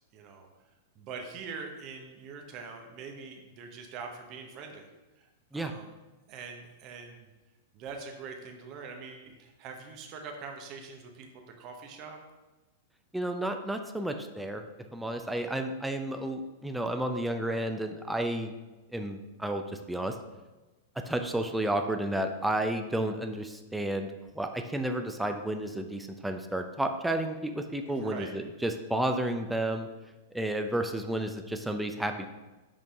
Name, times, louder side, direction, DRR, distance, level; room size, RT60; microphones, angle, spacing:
voice 1, 0.1-0.5 1.0-4.8 5.2-5.9 6.3-7.3 7.7-11.3 11.6-12.2 27.9-28.3, right 5 dB, 40° right, 4 dB, 0.8 m, -43 dB
voice 2, 13.1-14.6 14.9-18.5 18.9-20.1 21.0-29.9 30.3-32.3, right 1 dB, 5° right, 6 dB, 0.4 m, -31 dB
5.3 x 5.2 x 3.5 m, 1.1 s
hypercardioid pair, 105°, 0 cm